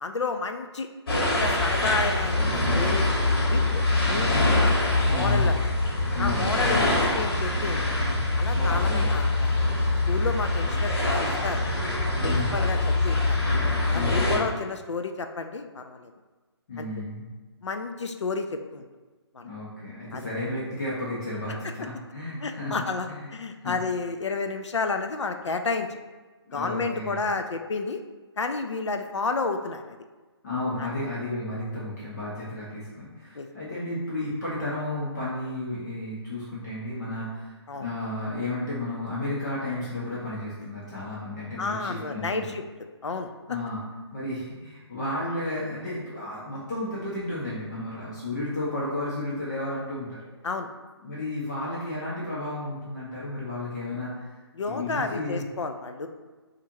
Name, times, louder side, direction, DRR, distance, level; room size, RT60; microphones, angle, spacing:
voice 1, 0.0-0.9 1.3-3.1 3.5-4.3 5.1-5.7 6.2-7.8 8.4-9.6 10.1-11.7 12.2-13.4 13.9-16.1 16.8-16.9 17.6-18.9 19.3-19.4 20.1-20.2 22.4-25.9 26.5-28.0 28.4-30.0 30.8-30.9 33.4-33.5 37.7-37.8 41.6-42.6 43.0-43.3 50.4-50.7 54.5-56.1, left 4 dB, 85° left, 6 dB, 0.4 m, -31 dB
sound 1, 1.1-14.4, left 2 dB, 55° left, 1.4 m, -24 dB
voice 2, 5.1-5.4 6.1-6.9 8.5-9.1 12.1-12.5 13.9-14.5 16.7-17.3 19.4-23.3 23.6-23.8 26.5-27.2 30.4-42.4 43.5-43.8 44.1-50.2 51.0-54.4 54.6-55.4, left 2 dB, 40° left, -9 dB, 1.0 m, -33 dB
4.3 x 2.5 x 2.7 m, 1.3 s
figure-of-eight pair, 150°, 15 cm